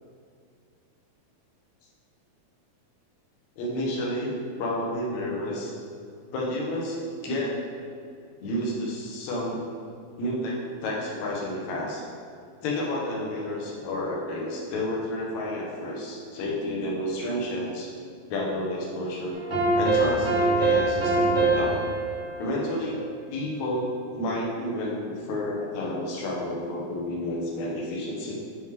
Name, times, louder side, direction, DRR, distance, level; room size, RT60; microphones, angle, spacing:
voice 1, 3.6-5.7 6.3-7.6 8.4-9.6 10.2-12.0 12.6-17.9 18.3-19.4 19.8-21.8 22.4-23.0 23.3-28.4, left 1 dB, 65° left, -3 dB, 2.1 m, -30 dB
sound 1, 19.3-23.5, right 2 dB, 55° right, 0.5 m, -25 dB
6.2 x 6.2 x 3.6 m, 2.4 s
omnidirectional pair, 4.1 m